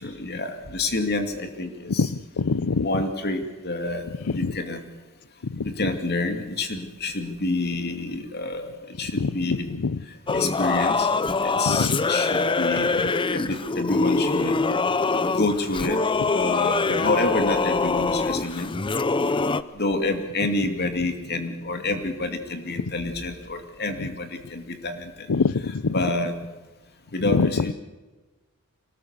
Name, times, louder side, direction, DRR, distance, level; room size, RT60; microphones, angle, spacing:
voice 1, 0.0-2.1 2.8-4.1 4.3-4.8 5.6-9.7 10.3-11.1 11.4-12.9 13.3-14.6 15.3-16.0 16.3-18.8 19.7-25.3 25.9-26.3 27.1-27.7, left 2 dB, 50° left, 6 dB, 2.5 m, -28 dB
voice 2, 2.0-2.9 4.3-4.5 5.4-5.7 9.2-9.3 9.8-10.0 11.7-12.0 25.3-25.9 27.3-27.6, left 4 dB, 85° left, 19 dB, 0.6 m, -24 dB
Singing / Musical instrument, 10.3-19.6, left 3 dB, 25° left, 0.6 m, -24 dB
24.5 x 18.5 x 6.7 m, 1.2 s
head